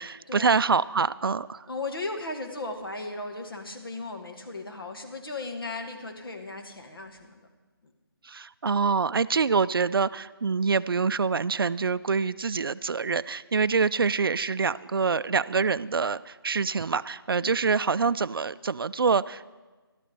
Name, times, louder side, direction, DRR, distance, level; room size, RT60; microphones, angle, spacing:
voice 1, 0.0-1.7 8.2-19.5, right 5 dB, 65° right, 16 dB, 0.4 m, -26 dB
voice 2, 1.7-7.5 7.8-7.9 17.4-17.5, left 2 dB, 65° left, 4 dB, 1.8 m, -36 dB
12.0 x 11.5 x 5.3 m, 1.3 s
figure-of-eight pair, 175°, 13 cm